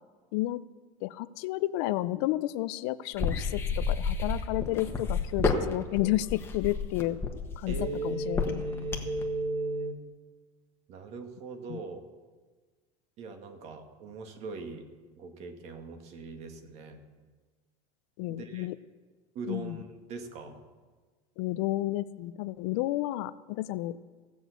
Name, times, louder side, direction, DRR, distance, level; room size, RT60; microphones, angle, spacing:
voice 1, 0.3-0.6 1.0-7.2 7.6-8.6 11.7-11.8 18.2-18.7 19.5-19.8 21.4-24.0, left 16 dB, 70° left, 15 dB, 0.5 m, -31 dB
sound 1, 3.1-9.2, left 5 dB, 15° left, 1.3 m, -30 dB
voice 2, 7.7-10.0 10.9-12.1 13.2-14.9 15.2-17.0 18.3-18.7 19.3-20.6, right 2 dB, 45° right, 6 dB, 1.5 m, -37 dB
16.0 x 6.3 x 8.1 m, 1.4 s
cardioid pair, 155°, 15 cm